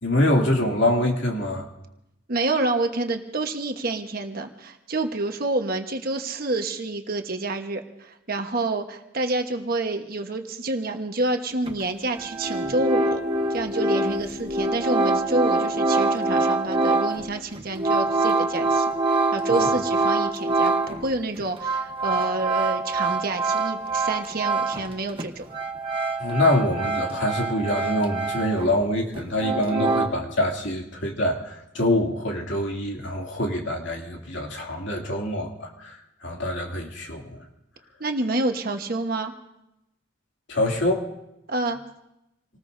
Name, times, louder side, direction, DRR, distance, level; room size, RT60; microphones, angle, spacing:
voice 1, 0.0-1.7 12.6-12.7 19.5-19.7 26.2-37.5 40.5-41.1, left 1 dB, 70° left, 0 dB, 2.7 m, -25 dB
voice 2, 2.3-13.2 13.5-25.5 38.0-39.3 41.5-41.8, right 2 dB, 50° right, 4 dB, 1.3 m, -28 dB
sound 1, 11.7-11.8 12.1-21.1 21.4-24.9 25.2-28.8 29.1-30.1, right 3 dB, 30° right, 1.0 m, -25 dB
28.0 x 19.5 x 2.7 m, 0.88 s
head